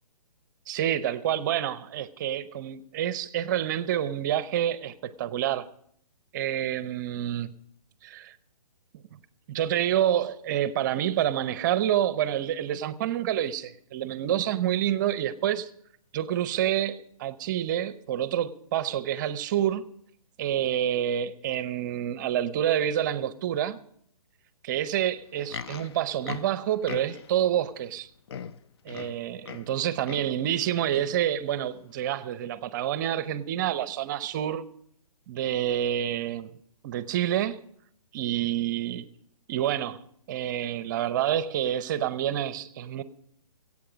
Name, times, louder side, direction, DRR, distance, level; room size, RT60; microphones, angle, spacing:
voice 1, 0.7-5.7 6.3-7.5 8.0-8.3 9.5-15.7 16.1-19.9 20.4-23.8 24.6-28.1 28.8-34.6 35.3-36.5 36.8-37.6 38.1-39.1 39.5-40.0 40.3-43.0, right 11 dB, 30° right, 0.6 m, -28 dB
Livestock farm animals working animals, 25.2-27.4 28.0-28.1 28.3-29.8 30.0-30.4 30.9-31.2 31.9-32.0, left 7 dB, 45° left, 0.5 m, -40 dB
21.5 x 8.5 x 5.1 m
hypercardioid pair, 145°, 19 cm